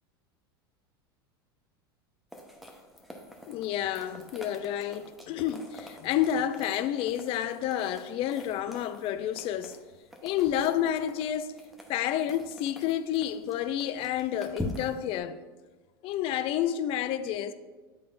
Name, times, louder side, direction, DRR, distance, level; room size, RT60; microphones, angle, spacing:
sound 1, 2.3-15.2, left 1 dB, ahead, 0.9 m, -45 dB
voice 1, 3.5-9.8 10.2-11.5 11.9-15.4 16.0-17.5, left 10 dB, 45° left, 0.4 m, -30 dB
10.5 x 3.6 x 2.5 m
hypercardioid pair, 95°, 13 cm